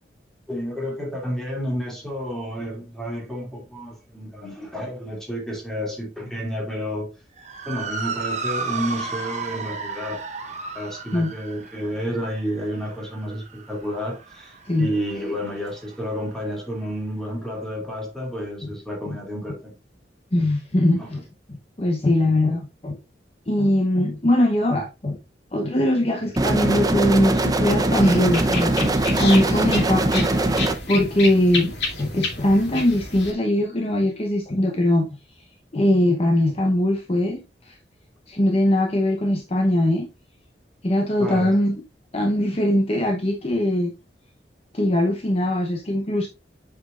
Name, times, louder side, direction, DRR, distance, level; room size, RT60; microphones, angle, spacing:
voice 1, 0.5-7.1 7.7-19.7 21.0-21.1 41.2-41.6, equal, 5° left, 2.6 m, -30 dB
Motor vehicle (road) / Siren, 7.4-15.9, right 4 dB, 40° right, 1.2 m, -34 dB
voice 2, 20.3-21.2 21.8-23.0 23.5-25.2 25.5-30.6 30.9-35.1 35.7-37.7 38.3-40.1 40.8-41.7 42.1-43.9 44.7-46.3, left 1 dB, 35° left, 0.9 m, -21 dB
sound 1, 26.4-30.8, right 2 dB, 20° right, 0.7 m, -21 dB
sound 2, 28.0-33.3, left 3 dB, 75° left, 2.8 m, -30 dB
7.9 x 6.0 x 2.5 m
head